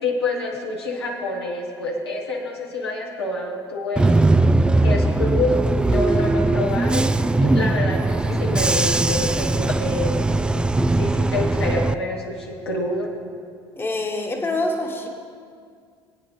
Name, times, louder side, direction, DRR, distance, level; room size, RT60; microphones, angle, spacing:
voice 1, 0.0-4.2 4.8-10.2 10.9-13.1, left 2 dB, 75° left, -2 dB, 1.6 m, -27 dB
Bus / Engine, 4.0-11.9, right 2 dB, 5° right, 0.3 m, -20 dB
sound 1, 6.7-11.8, left 6 dB, 45° left, 0.8 m, -39 dB
voice 2, 13.8-15.1, left 2 dB, 15° left, 3 dB, 1.4 m, -25 dB
21.0 x 9.2 x 3.3 m, 2.2 s
figure-of-eight pair, 60°, 13 cm